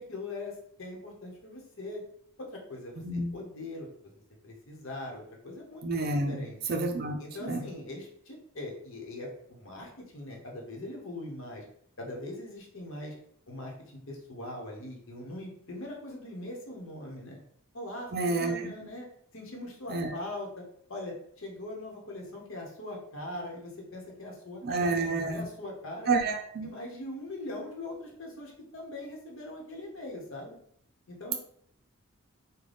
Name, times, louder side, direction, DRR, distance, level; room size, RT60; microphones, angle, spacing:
voice 1, 0.0-2.0 2.4-5.9 6.3-6.6 7.2-11.6 12.0-13.1 13.5-17.4 17.7-19.1 19.3-20.6 20.9-26.1 26.6-30.6 31.1-31.4, left 1 dB, 70° left, -1 dB, 1.0 m, -41 dB
voice 2, 3.0-3.3 5.8-6.4 6.7-7.7 18.1-18.7 19.9-20.2 24.6-25.5 26.1-26.7, right 3 dB, 45° right, 4 dB, 0.5 m, -29 dB
3.9 x 2.2 x 3.4 m, 0.65 s
head